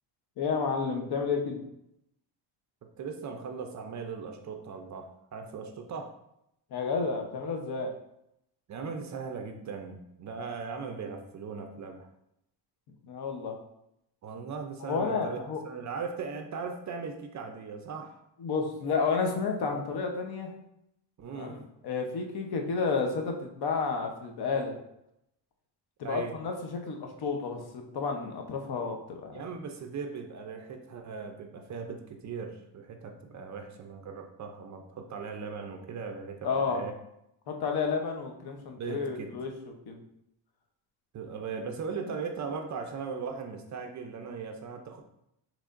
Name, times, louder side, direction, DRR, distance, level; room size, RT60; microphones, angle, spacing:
voice 1, 0.4-1.6 6.7-7.9 13.0-13.6 14.8-15.6 18.4-20.5 21.3-24.8 26.0-29.4 36.4-36.8 37.5-39.5 39.9-40.0, left 5 dB, 55° left, 3 dB, 0.9 m, -31 dB
voice 2, 3.0-6.2 8.7-12.1 14.2-18.2 21.2-21.6 26.0-26.4 29.3-37.0 38.8-39.3 41.1-45.0, right 5 dB, 40° right, 4 dB, 0.5 m, -38 dB
6.4 x 3.2 x 2.5 m, 0.80 s
cardioid pair, 135°, 46 cm